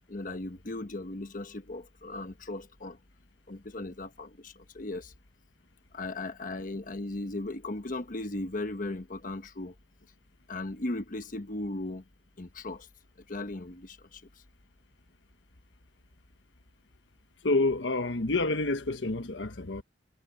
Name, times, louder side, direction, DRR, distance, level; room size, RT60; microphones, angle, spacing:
voice 1, 0.1-3.0 3.5-5.1 5.9-9.7 10.5-12.0 12.4-12.9 13.3-14.2, left 2 dB, 50° left, 1.2 m, -37 dB
voice 2, 17.4-19.8, left 2 dB, 85° left, 1.3 m, -28 dB
head